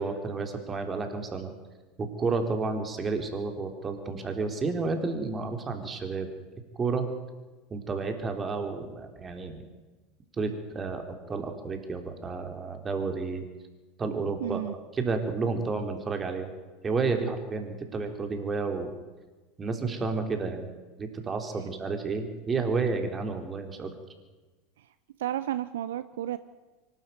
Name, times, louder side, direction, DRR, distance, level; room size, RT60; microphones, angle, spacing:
voice 1, 0.0-1.5 2.0-6.3 6.8-7.1 7.7-9.6 10.4-13.4 14.0-14.6 14.9-16.5 16.8-18.9 19.6-20.7 21.0-23.9, right 4 dB, 25° right, 5 dB, 3.7 m, -31 dB
voice 2, 14.4-14.7 25.2-26.4, right 12 dB, 70° right, 14 dB, 0.7 m, -32 dB
24.0 x 12.5 x 9.4 m, 1.2 s
hypercardioid pair, 85°, 0 cm